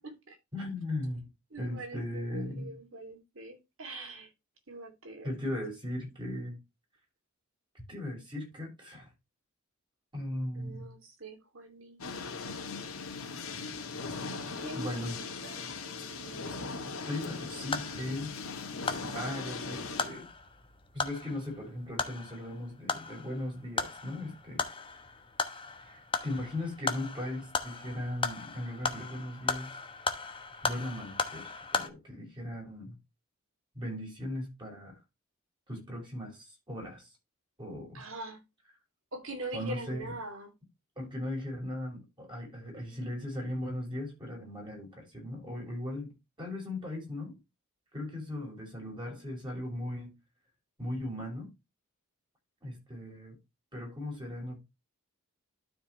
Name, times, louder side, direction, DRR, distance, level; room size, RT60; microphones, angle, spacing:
voice 1, 0.5-1.2 1.6-2.8 5.2-6.6 7.7-9.1 10.1-10.9 14.7-15.2 17.1-18.3 18.9-20.3 20.9-24.6 25.8-29.8 30.6-33.0 33.7-35.0 35.7-37.1 37.6-38.0 39.5-40.1 41.0-46.1 46.4-47.3 47.9-50.1 50.8-51.5 52.6-53.4 53.7-54.6, left 1 dB, 20° right, 5.5 m, -38 dB
voice 2, 1.5-4.3 4.7-5.3 10.6-12.0 14.6-16.9 37.9-38.4 39.1-40.5 42.8-43.1, right 2 dB, 65° right, 2.8 m, -44 dB
sound 1, 12.0-20.1, left 4 dB, 75° left, 2.4 m, -39 dB
sound 2, 17.3-31.9, left 4 dB, 25° left, 1.0 m, -37 dB
12.5 x 5.1 x 3.1 m
head